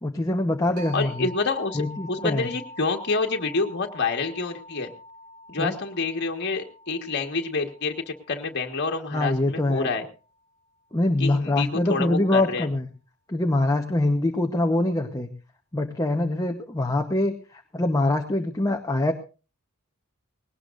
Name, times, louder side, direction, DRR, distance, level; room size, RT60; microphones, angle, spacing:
voice 1, 0.0-1.3 1.7-2.5 5.6-5.7 9.1-9.9 10.9-12.9 13.3-15.3 15.7-19.1, left 2 dB, 15° left, 3 dB, 1.1 m, -24 dB
sound 1, 0.8-10.2, left 1 dB, 90° right, 6.8 m, -46 dB
voice 2, 0.9-4.9 5.5-10.0 11.2-12.7, left 3 dB, 50° left, 3 dB, 1.8 m, -28 dB
20.0 x 18.0 x 2.6 m, 0.34 s
head